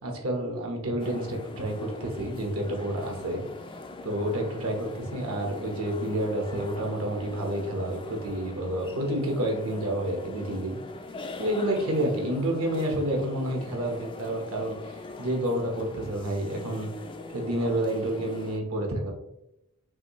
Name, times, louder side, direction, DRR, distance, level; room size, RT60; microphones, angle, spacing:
voice 1, 0.0-3.4 4.0-10.8 11.4-16.9 17.3-19.1, right 1 dB, 70° right, 1 dB, 1.2 m, -29 dB
sound 1, 1.0-18.6, left 3 dB, 25° left, 0.4 m, -42 dB
6.1 x 2.7 x 3.1 m, 0.86 s
head